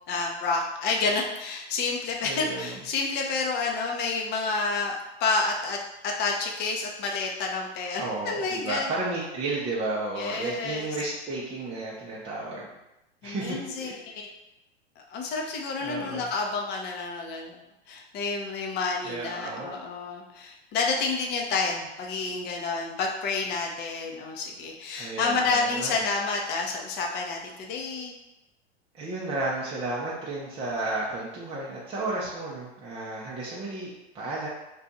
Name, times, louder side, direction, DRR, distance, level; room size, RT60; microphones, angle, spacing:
voice 1, 0.1-5.8 6.0-8.9 10.2-10.9 13.2-14.3 15.0-17.6 17.9-28.1, left 4 dB, 30° left, 0 dB, 0.6 m, -29 dB
voice 2, 2.2-2.8 8.0-12.7 13.2-13.9 15.4-16.3 19.0-19.7 24.9-26.0 28.9-34.5, right 2 dB, 15° right, -6 dB, 0.6 m, -33 dB
2.5 x 2.3 x 3.9 m, 0.93 s
hypercardioid pair, 105°, 33 cm